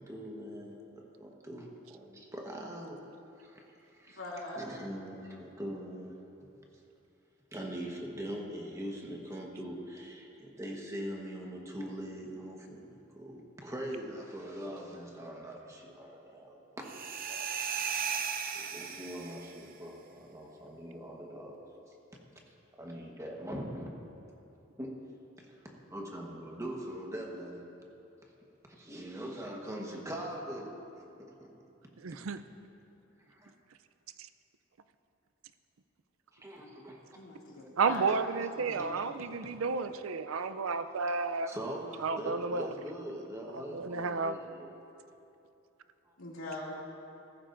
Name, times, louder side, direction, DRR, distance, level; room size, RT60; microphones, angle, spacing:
voice 1, 0.0-3.0 3.4-4.2 4.5-6.1 7.5-17.5 18.5-21.6 22.7-23.9 24.8-25.0 25.4-25.5 25.9-27.6 28.7-31.5 33.3-33.5 36.3-37.0 38.1-38.2 38.7-39.3 40.3-41.2 41.5-44.7 46.0-46.1 46.7-46.8, equal, 15° right, -1 dB, 1.3 m, -42 dB
voice 2, 4.2-4.6 37.2-38.0 38.7-38.8 46.2-46.7, left 2 dB, 85° left, -4 dB, 2.5 m, -41 dB
sound 1, 16.8-19.6, right 6 dB, 45° right, 0.7 m, -36 dB
voice 3, 32.0-32.4 37.8-41.5 42.0-42.7 43.7-44.4, right 4 dB, 85° right, 11 dB, 0.5 m, -32 dB
15.5 x 14.0 x 2.6 m, 2.8 s
head